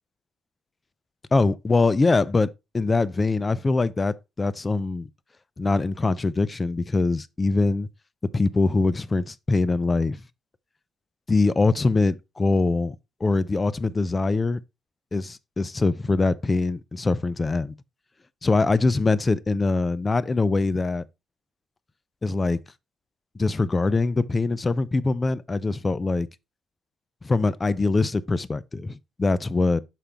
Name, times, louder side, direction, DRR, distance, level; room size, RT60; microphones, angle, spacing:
voice 1, 1.3-2.5 2.7-5.1 5.6-7.9 8.3-10.2 11.3-13.0 13.2-14.6 15.1-17.7 18.4-21.0 22.2-22.6 23.4-26.3 27.2-29.8, left 3 dB, 25° left, 0.4 m, -23 dB
5.9 x 5.0 x 3.4 m
cardioid pair, 90°, 0 cm